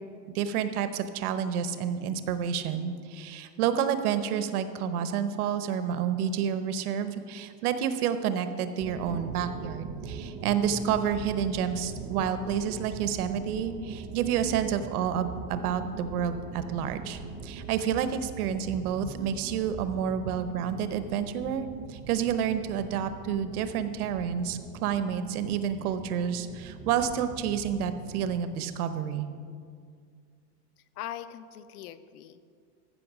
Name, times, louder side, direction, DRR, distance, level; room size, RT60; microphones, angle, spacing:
voice 1, 0.3-29.3, right 8 dB, 65° right, 10 dB, 0.9 m, -29 dB
sound 1, 8.8-28.4, right 4 dB, 20° right, 0.6 m, -41 dB
voice 2, 31.0-32.4, left 11 dB, 70° left, 13 dB, 0.7 m, -41 dB
14.5 x 5.5 x 6.0 m, 2.2 s
supercardioid pair, 165°, 47 cm